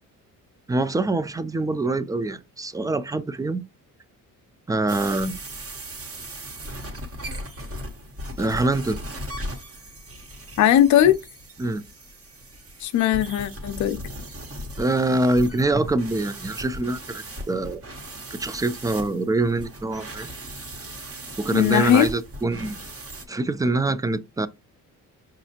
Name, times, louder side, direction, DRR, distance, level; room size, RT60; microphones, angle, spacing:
voice 1, 0.7-3.6 4.7-5.4 8.4-9.0 11.6-11.8 14.8-17.8 18.4-20.3 21.4-22.8 23.3-24.5, right 2 dB, 10° right, 0.3 m, -24 dB
sound 1, 4.9-23.2, equal, 40° right, 1.3 m, -38 dB
voice 2, 10.6-11.2 12.8-14.0 21.5-22.1, left 11 dB, 55° left, 0.5 m, -18 dB
5.4 x 2.5 x 2.8 m
cardioid pair, 90°, 34 cm